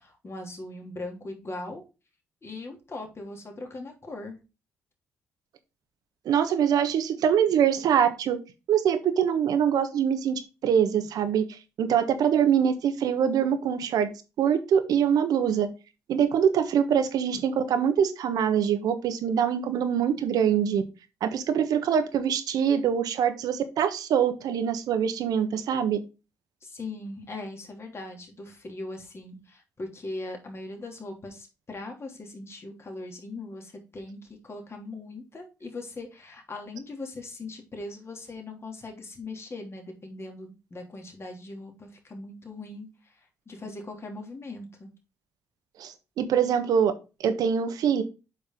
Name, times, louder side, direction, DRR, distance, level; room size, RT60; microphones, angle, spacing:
voice 1, 0.0-1.8 2.4-4.4 26.6-44.9, left 2 dB, 40° left, 2 dB, 3.0 m, -40 dB
voice 2, 6.2-8.4 8.7-14.1 14.4-15.7 16.1-20.8 21.2-26.0 45.8-46.9 47.2-48.0, right 8 dB, 65° right, 8 dB, 1.3 m, -24 dB
7.7 x 5.4 x 3.8 m, 0.29 s
hypercardioid pair, 45°, 7 cm